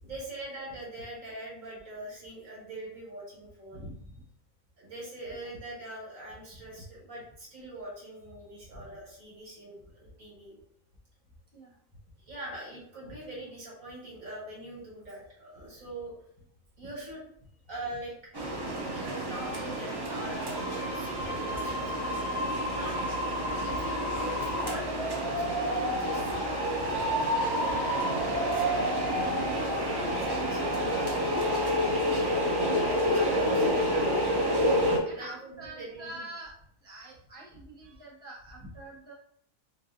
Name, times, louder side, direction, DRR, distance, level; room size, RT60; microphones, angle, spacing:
voice 1, 0.0-3.9 4.8-10.6 12.3-16.1 16.8-17.2 17.7-18.1 18.9-23.2 23.6-29.2 29.9-31.2 31.9-33.8 35.1-36.3 37.8-38.0, right 1 dB, 75° right, -4 dB, 1.8 m, -43 dB
voice 2, 3.7-4.1 8.7-8.8 11.5-11.8 23.7-23.8 26.2-26.3 35.1-36.5 36.8-39.1, right 1 dB, 10° left, -5 dB, 0.7 m, -45 dB
sound 1, 18.3-35.0, equal, 35° right, 0.3 m, -28 dB
3.9 x 3.0 x 2.5 m, 0.68 s
omnidirectional pair, 1.4 m